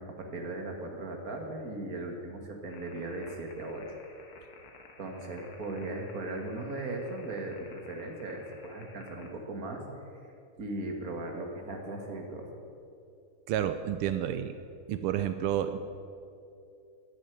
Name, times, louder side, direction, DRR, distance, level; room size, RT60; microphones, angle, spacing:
voice 1, 0.0-4.0 5.0-9.8 10.6-12.5, right 2 dB, 45° right, 2 dB, 2.2 m, -38 dB
sound 1, 2.7-9.3, left 4 dB, 85° left, 2.3 m, -54 dB
voice 2, 13.5-14.5 14.9-15.8, right 10 dB, 85° right, 9 dB, 1.6 m, -30 dB
12.5 x 10.5 x 9.3 m, 2.6 s
omnidirectional pair, 2.3 m